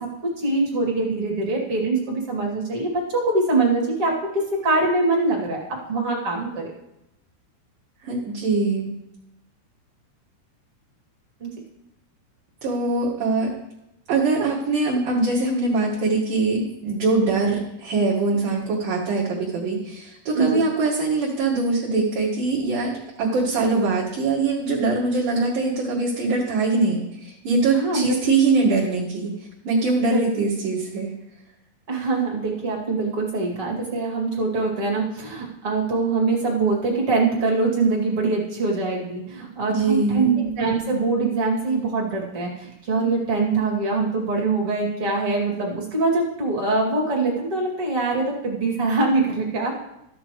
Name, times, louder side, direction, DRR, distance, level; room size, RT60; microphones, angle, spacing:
voice 1, 0.2-5.6 5.9-6.7 11.4-11.5 20.3-20.7 27.7-28.2 30.0-30.2 31.9-49.7, right 3 dB, 40° right, -2 dB, 2.6 m, -23 dB
voice 2, 8.0-8.9 12.6-13.5 14.1-22.9 23.2-29.3 29.6-31.1 39.7-40.3, right 3 dB, 60° right, -7 dB, 3.1 m, -22 dB
13.5 x 8.5 x 4.8 m, 0.87 s
omnidirectional pair, 4.9 m